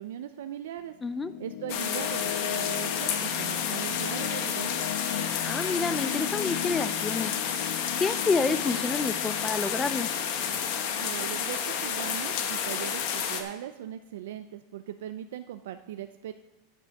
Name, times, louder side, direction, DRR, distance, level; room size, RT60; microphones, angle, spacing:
voice 1, 0.0-1.0 1.4-4.7 11.0-16.3, right 11 dB, 80° right, 9 dB, 0.5 m, -39 dB
sound 1, 0.8-12.1, left 10 dB, 85° left, 0.8 m, -38 dB
voice 2, 1.0-1.3 5.4-7.3 8.0-10.1, left 4 dB, 10° left, 13 dB, 0.4 m, -28 dB
sound 2, 1.7-13.4, left 7 dB, 50° left, 1.2 m, -30 dB
10.5 x 6.2 x 6.3 m, 0.96 s
supercardioid pair, 165°, 0 cm